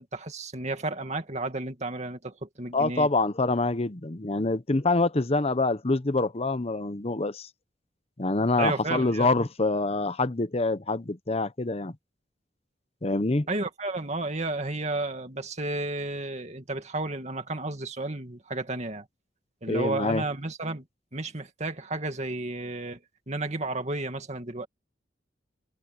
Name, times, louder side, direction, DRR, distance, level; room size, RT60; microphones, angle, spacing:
voice 1, 0.0-3.1 8.6-9.3 13.5-19.1 19.6-20.8 21.1-23.0 23.3-24.7, right 2 dB, 40° right, 2.2 m, -32 dB
voice 2, 2.7-7.5 8.2-11.9 13.0-13.5 19.7-20.2, left 2 dB, 35° left, 0.9 m, -26 dB
head